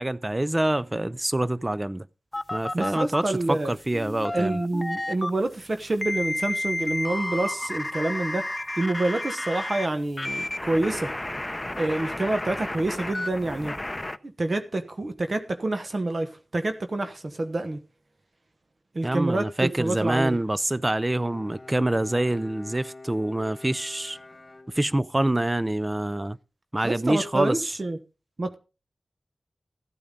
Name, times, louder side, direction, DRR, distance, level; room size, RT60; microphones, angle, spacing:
voice 1, 0.0-2.1 2.5-4.6 19.0-24.2 24.7-26.4 26.7-27.6, right 1 dB, 25° right, 0.4 m, -26 dB
sound 1, 2.3-3.2 3.9-5.3 6.0-9.9 10.2-14.2, left 1 dB, 25° left, 0.6 m, -31 dB
voice 2, 2.7-3.7 4.3-8.5 8.8-11.1 11.8-13.8 14.2-17.8 18.9-20.4 26.8-28.0 28.4-28.5, right 2 dB, 55° right, 1.1 m, -27 dB
Bowed string instrument, 20.9-25.2, left 2 dB, 40° left, 1.6 m, -46 dB
14.5 x 8.8 x 3.8 m
cardioid pair, 45°, 0 cm